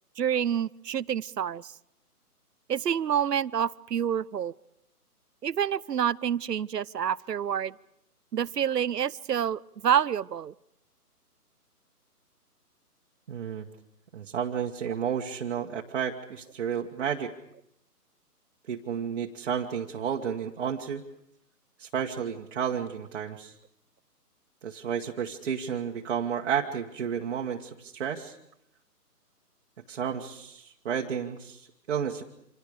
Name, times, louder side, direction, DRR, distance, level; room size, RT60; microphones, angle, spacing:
voice 1, 0.2-1.7 2.7-4.5 5.4-7.7 8.3-10.5, right 9 dB, 85° right, 21 dB, 0.8 m, -28 dB
voice 2, 13.3-13.7 14.1-17.3 18.7-21.0 21.8-23.5 24.6-28.4 29.9-32.2, right 8 dB, 45° right, 1 dB, 1.5 m, -32 dB
29.5 x 26.5 x 5.1 m, 0.80 s
hypercardioid pair, 155°, 47 cm